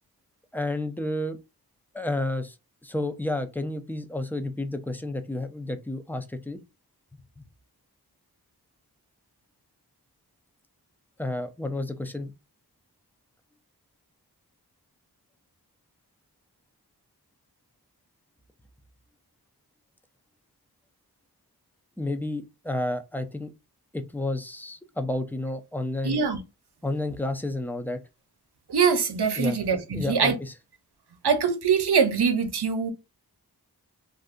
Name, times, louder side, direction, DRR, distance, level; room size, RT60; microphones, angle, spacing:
voice 1, 0.5-1.4 1.9-2.6 2.8-6.6 7.1-7.2 11.2-12.3 22.0-23.5 23.9-26.2 26.8-28.0 29.4-29.6 29.9-30.3, left 2 dB, 5° left, 0.4 m, -31 dB
voice 2, 26.0-26.4 28.7-30.4 31.2-32.9, right 6 dB, 80° right, 0.7 m, -23 dB
2.6 x 2.5 x 3.6 m
wide cardioid pair, 60°, 39 cm